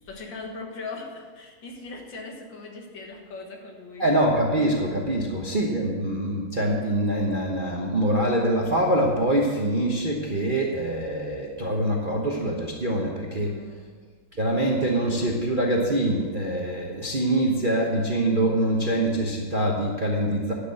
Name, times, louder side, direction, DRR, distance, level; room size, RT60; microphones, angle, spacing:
voice 1, 0.0-4.1 13.4-13.9, left 3 dB, 60° left, 1 dB, 2.2 m, -39 dB
voice 2, 4.0-13.6 14.3-20.5, right 1 dB, 35° right, -1 dB, 0.9 m, -24 dB
11.5 x 6.4 x 7.6 m, 1.5 s
omnidirectional pair, 2.3 m